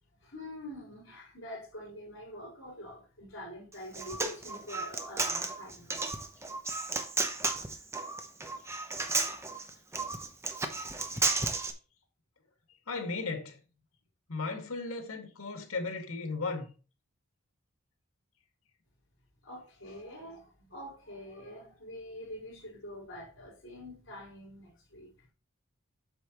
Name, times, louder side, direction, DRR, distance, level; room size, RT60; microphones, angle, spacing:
voice 1, 0.2-6.2 19.4-25.1, left 1 dB, 65° left, 4.5 m, -45 dB
Human voice, 3.7-11.7, right 3 dB, 15° right, 0.8 m, -33 dB
voice 2, 12.9-13.6 14.3-16.7, left 3 dB, 85° left, 2.0 m, -35 dB
8.1 x 6.6 x 3.0 m
head